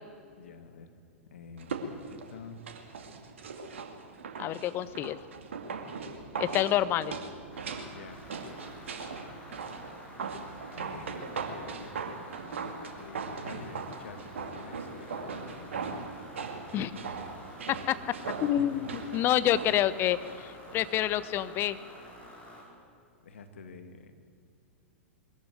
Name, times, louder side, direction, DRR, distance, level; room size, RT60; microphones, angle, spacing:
voice 1, 0.4-0.9 1.3-2.6 7.8-9.4 9.7-9.8 10.1-10.3 10.8-16.2 17.5-17.6 18.6-18.8 23.2-24.1, left 5 dB, 70° left, 8 dB, 2.1 m, -49 dB
sound 1, 1.6-20.4 20.7-20.8, right 5 dB, 70° right, 2.2 m, -40 dB
voice 2, 4.4-5.2 6.4-7.2 16.7-16.9 17.7-18.0 18.4-21.8, left 12 dB, 30° left, 15 dB, 0.9 m, -28 dB
sound 2, 7.5-22.6, equal, 15° left, 6.0 m, -50 dB
22.0 x 14.0 x 9.4 m, 2.4 s
figure-of-eight pair, 100°, 7 cm